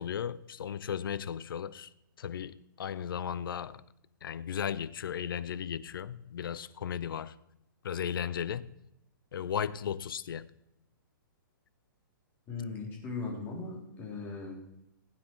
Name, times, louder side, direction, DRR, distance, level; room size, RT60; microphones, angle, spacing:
voice 1, 0.0-1.9 2.2-3.8 4.2-7.4 7.8-8.7 9.3-10.5, left 8 dB, 75° left, 0.6 m, -35 dB
voice 2, 12.5-14.6, left 4 dB, 20° left, 3.3 m, -38 dB
16.0 x 9.2 x 4.5 m
hypercardioid pair, 160°, 11 cm